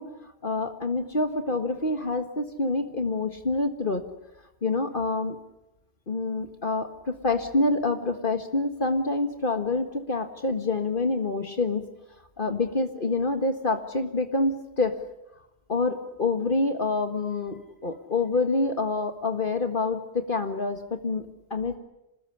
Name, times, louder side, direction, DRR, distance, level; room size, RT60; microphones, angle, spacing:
voice 1, 0.0-4.1 4.6-5.4 6.1-11.8 12.4-15.0 15.7-21.8, left 3 dB, 50° left, 7 dB, 1.8 m, -27 dB
27.0 x 19.5 x 10.0 m, 0.93 s
omnidirectional pair, 1.1 m